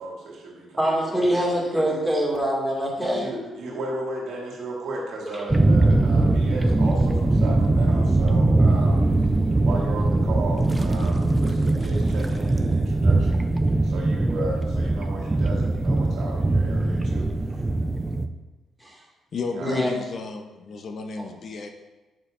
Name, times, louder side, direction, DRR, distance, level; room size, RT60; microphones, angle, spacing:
voice 1, 0.0-1.8 3.0-9.1 9.6-13.4 13.8-17.6 19.5-19.8, right 2 dB, 75° right, -3 dB, 2.1 m, -35 dB
voice 2, 0.8-3.3 18.8-19.0 19.6-19.9, equal, ahead, -3 dB, 2.1 m, -24 dB
sound 1, 5.5-18.3, right 2 dB, 15° right, 0.5 m, -21 dB
voice 3, 19.3-21.7, left 4 dB, 55° left, 4 dB, 0.8 m, -33 dB
8.8 x 6.8 x 2.6 m, 1.1 s
cardioid pair, 90°, 0 cm